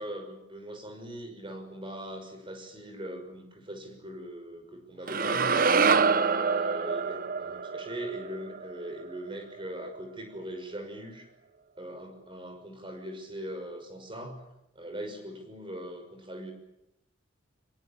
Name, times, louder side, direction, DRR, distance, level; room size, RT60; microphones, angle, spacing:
voice 1, 0.0-11.3 11.8-14.4 14.7-16.5, right 1 dB, 25° right, 6 dB, 6.1 m, -40 dB
sound 1, 5.1-9.3, right 5 dB, 45° right, 0.9 m, -26 dB
23.5 x 22.5 x 9.0 m, 0.84 s
head